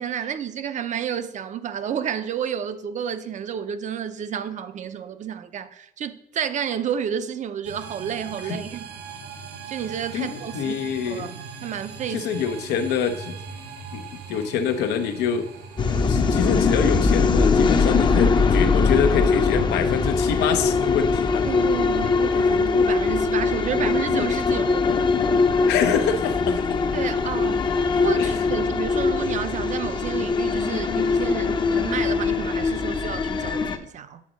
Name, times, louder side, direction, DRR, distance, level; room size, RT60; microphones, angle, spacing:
voice 1, 0.0-8.9 9.7-12.3 21.4-24.9 26.9-34.2, right 8 dB, 45° right, 0.6 m, -31 dB
sound 1, 7.6-16.9, right 5 dB, 75° right, 1.0 m, -40 dB
voice 2, 10.1-11.3 12.1-13.3 13.9-15.5 15.9-21.5 22.3-22.5 25.7-26.6 28.2-28.3, left 7 dB, 85° left, 0.8 m, -25 dB
sound 2, 15.8-33.8, left 4 dB, 25° left, 0.6 m, -21 dB
Telephone, 25.6-28.8, left 9 dB, 50° left, 1.2 m, -43 dB
8.4 x 3.9 x 6.2 m
cardioid pair, 110°, 17 cm